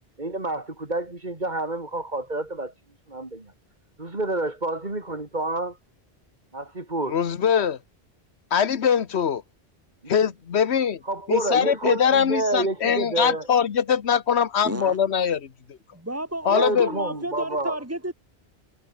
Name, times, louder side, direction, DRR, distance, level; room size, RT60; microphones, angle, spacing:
voice 1, 0.2-2.7 3.1-3.5 4.0-5.8 6.5-7.2 10.0-10.3 11.1-13.5 16.5-17.8, right 2 dB, 45° right, 3.5 m, -28 dB
voice 2, 7.1-7.8 8.5-9.4 10.1-11.0 11.3-15.5 16.4-16.9, left 7 dB, 90° left, 1.3 m, -22 dB
voice 3, 14.6-15.0 15.9-18.1, right 1 dB, 15° right, 2.8 m, -31 dB
omnidirectional pair, 1.1 m